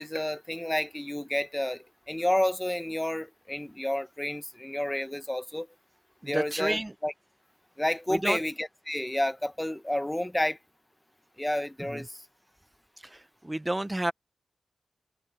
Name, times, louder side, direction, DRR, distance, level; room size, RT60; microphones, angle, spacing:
voice 1, 0.0-5.7 6.3-7.1 7.8-10.6 11.4-12.2, left 1 dB, 10° left, 0.8 m, -30 dB
voice 2, 6.2-6.9 8.1-8.4 11.9-12.0 13.0-14.1, right 1 dB, 15° right, 0.6 m, -31 dB
cardioid pair, 70°, 0 cm